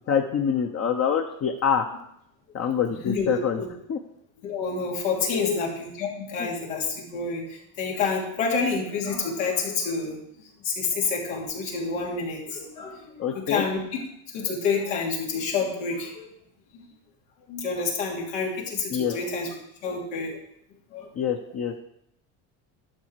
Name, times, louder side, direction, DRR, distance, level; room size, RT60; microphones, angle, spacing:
voice 1, 0.1-1.9 2.5-3.6 3.9-4.0 5.3-5.6 6.4-6.5 13.2-13.7 18.9-19.1 21.1-21.7, left 7 dB, 40° left, 3 dB, 1.0 m, -25 dB
voice 2, 3.1-3.7 4.4-10.2 10.6-14.0 14.3-16.3 17.5-19.5 19.8-20.4 20.9-21.1, left 4 dB, 90° left, -2 dB, 3.2 m, -28 dB
12.0 x 6.5 x 4.8 m, 0.75 s
supercardioid pair, 110°, 40 cm